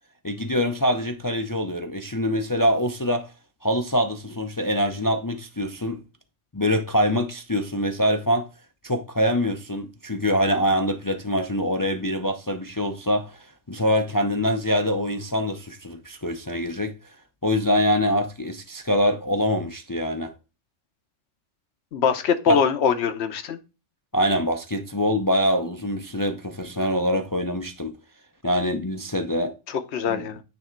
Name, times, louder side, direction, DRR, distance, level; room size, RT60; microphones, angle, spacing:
voice 1, 0.2-3.3 3.6-6.0 6.5-8.5 8.8-16.9 17.4-20.3 22.5-22.6 24.1-28.0 28.4-29.5 30.1-30.3, equal, 25° left, 0.5 m, -24 dB
voice 2, 21.9-23.6 29.7-30.4, left 7 dB, 60° left, 1.1 m, -23 dB
9.5 x 3.5 x 4.4 m
omnidirectional pair, 1.3 m